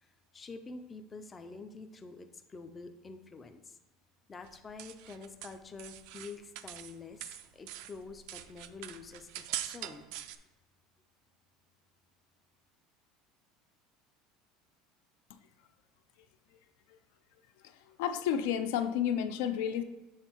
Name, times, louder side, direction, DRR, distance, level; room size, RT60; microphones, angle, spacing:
voice 1, 0.0-3.8 4.3-10.1, left 4 dB, 15° left, 7 dB, 0.4 m, -47 dB
sound 1, 4.5-7.0 7.2-10.4, right 12 dB, 60° right, 0.4 m, -43 dB
voice 2, 17.6-19.8, left 9 dB, 80° left, 9 dB, 0.5 m, -32 dB
7.2 x 3.4 x 4.4 m, 1.1 s
cardioid pair, 170°, 0 cm